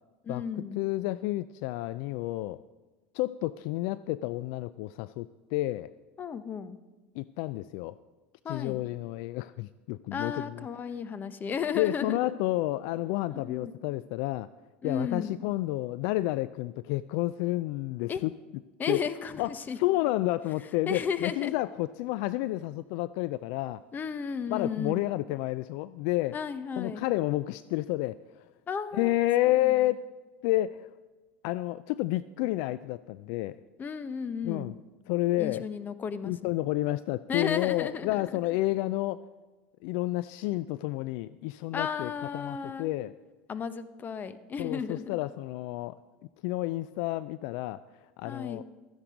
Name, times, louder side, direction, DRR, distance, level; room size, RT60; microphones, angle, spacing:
voice 1, 0.2-0.8 6.2-6.8 8.4-8.8 10.1-12.2 13.3-13.7 14.8-15.3 18.1-18.2 18.8-19.8 20.9-21.5 23.9-25.1 26.3-27.0 28.7-29.1 29.6-29.8 33.8-34.7 35.4-36.3 37.3-38.4 41.7-42.9 43.5-45.1 48.2-48.6, left 6 dB, 30° left, 13 dB, 0.9 m, -34 dB
voice 2, 0.7-2.6 3.1-5.9 7.2-8.0 8.5-10.6 11.8-14.5 14.8-18.3 18.9-19.0 19.4-19.5 19.8-23.8 24.5-26.4 26.8-28.5 28.9-30.1 30.4-30.9 31.4-33.6 34.4-34.7 35.1-35.7 36.2-39.3 39.8-43.1 44.6-45.9 46.4-47.8 48.2-48.6, left 17 dB, 65° left, 16 dB, 0.3 m, -30 dB
13.5 x 10.0 x 5.2 m, 1.2 s
hypercardioid pair, 90°, 6 cm